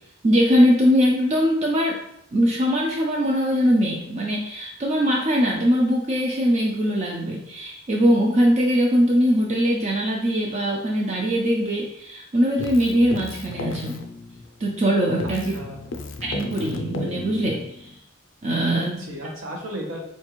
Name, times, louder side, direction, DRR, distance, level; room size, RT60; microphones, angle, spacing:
voice 1, 0.2-2.0 2.3-14.0 14.6-15.5 16.2-17.9 18.4-19.0, equal, 35° right, -1 dB, 0.4 m, -21 dB
Keyboard (musical), 12.6-14.9 15.2-18.0, left 2 dB, 75° left, 0.4 m, -34 dB
voice 2, 15.2-15.8 18.7-20.0, equal, 75° right, -1 dB, 0.9 m, -35 dB
4.3 x 2.4 x 3.0 m, 0.75 s
head